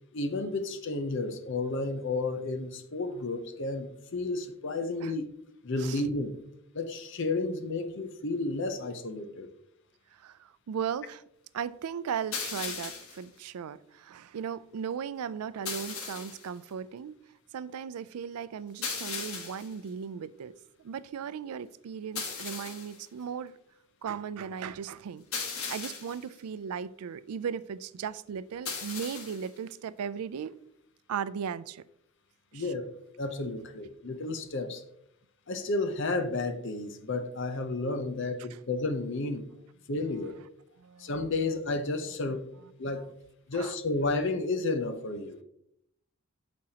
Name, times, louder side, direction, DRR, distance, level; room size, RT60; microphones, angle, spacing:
voice 1, 0.1-5.3 5.6-6.4 6.7-9.5 32.5-32.9 33.2-34.8 35.5-39.5 39.9-40.3 41.0-42.5 42.8-43.1 43.5-45.4, left 2 dB, 55° left, 0.7 m, -32 dB
voice 2, 10.7-11.2 11.5-17.1 17.5-20.5 20.8-23.5 24.0-25.2 25.5-30.5 31.1-31.8 32.5-32.6 40.8-41.1 43.5-43.7, right 7 dB, 85° right, 0.4 m, -37 dB
sound 1, 12.3-13.2 15.7-16.5 18.8-19.7 22.2-23.0 25.3-26.2 28.7-29.5, left 5 dB, 75° left, 1.3 m, -37 dB
8.7 x 6.2 x 2.8 m
head